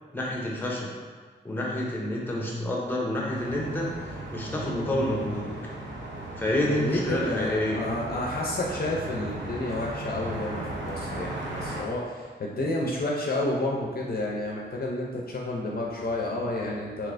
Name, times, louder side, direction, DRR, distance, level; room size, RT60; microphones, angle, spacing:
voice 1, 0.1-0.9 1.4-5.5 6.4-7.8, left 1 dB, 10° left, -3 dB, 0.7 m, -28 dB
sound 1, 3.3-11.8, right 2 dB, 90° right, 0.5 m, -37 dB
voice 2, 6.8-17.1, left 1 dB, 55° left, -2 dB, 0.5 m, -30 dB
3.1 x 2.9 x 2.5 m, 1.5 s
cardioid pair, 65°, 19 cm